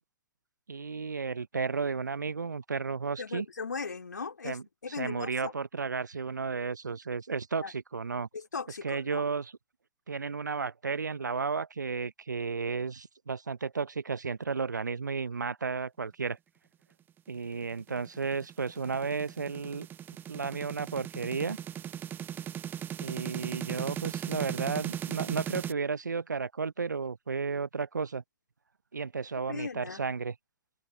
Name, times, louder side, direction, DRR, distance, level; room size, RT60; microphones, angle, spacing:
voice 1, 0.7-3.5 4.4-4.6 5.0-8.3 8.8-9.5 10.1-16.4 17.3-19.9 20.3-21.6 23.0-28.2 28.9-30.3, right 5 dB, 80° right, 0.9 m, -33 dB
voice 2, 3.2-5.5 7.6-7.7 8.3-9.2 29.3-30.0, left 5 dB, 75° left, 3.6 m, -38 dB
sound 1, 17.6-25.7, right 10 dB, 20° right, 0.8 m, -38 dB
figure-of-eight pair, 105°, 10 cm